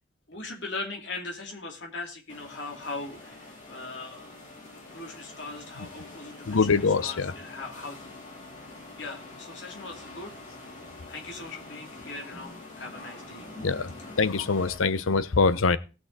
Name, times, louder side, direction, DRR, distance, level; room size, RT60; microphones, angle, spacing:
voice 1, 0.3-4.4 4.9-6.7 7.0-8.0 9.0-10.4 11.1-13.5, left 3 dB, 60° left, 2.7 m, -39 dB
sound 1, 2.3-14.8, left 2 dB, 40° left, 3.2 m, -45 dB
voice 2, 6.5-7.3 13.6-15.8, left 4 dB, 90° left, 0.7 m, -24 dB
18.5 x 6.3 x 4.0 m
head